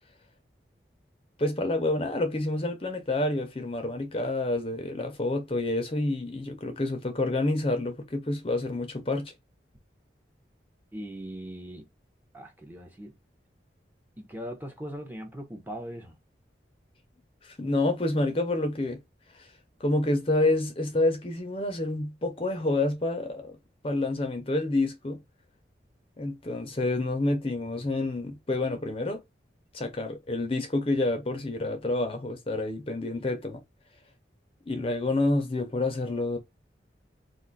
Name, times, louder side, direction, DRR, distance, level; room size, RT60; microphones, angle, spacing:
voice 1, 1.4-9.3 17.4-19.0 19.3-19.5 19.8-23.6 23.8-25.2 26.2-29.2 29.7-33.6 34.7-36.4, left 2 dB, 30° left, 0.6 m, -28 dB
voice 2, 10.9-11.9 12.3-13.1 14.2-16.2, equal, 10° right, 0.7 m, -40 dB
2.5 x 2.3 x 3.9 m
head